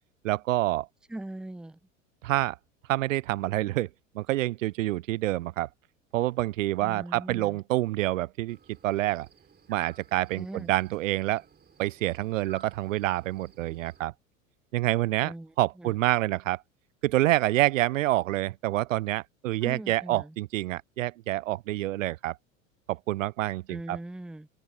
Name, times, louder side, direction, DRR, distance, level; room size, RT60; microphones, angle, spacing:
voice 1, 0.2-0.9 2.2-2.6 2.9-3.9 4.1-5.7 6.1-8.6 8.8-9.3 9.7-11.4 11.8-14.1 14.7-16.6 17.0-22.4 22.9-24.0, right 16 dB, 70° right, 0.5 m, -27 dB
voice 2, 1.1-1.8 6.8-7.6 10.3-10.7 15.2-15.9 19.6-20.3 23.7-24.5, right 1 dB, ahead, 0.6 m, -40 dB
sound 1, 8.5-14.0, right 6 dB, 25° right, 4.1 m, -55 dB
open air
figure-of-eight pair, 75°, 41 cm